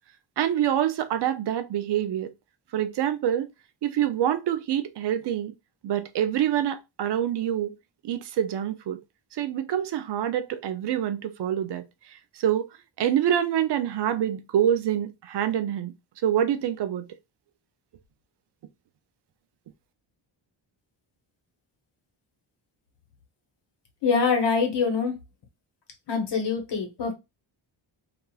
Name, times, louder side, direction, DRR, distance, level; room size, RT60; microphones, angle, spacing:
voice 1, 0.4-2.3 2.7-3.5 3.8-5.5 5.8-7.7 8.0-9.0 9.3-12.7 13.0-15.9 16.2-17.1, right 10 dB, 55° right, 0.5 m, -26 dB
voice 2, 24.0-25.1 26.1-27.1, left 5 dB, 55° left, 1.0 m, -24 dB
2.9 x 2.4 x 2.2 m
cardioid pair, 110°, 49 cm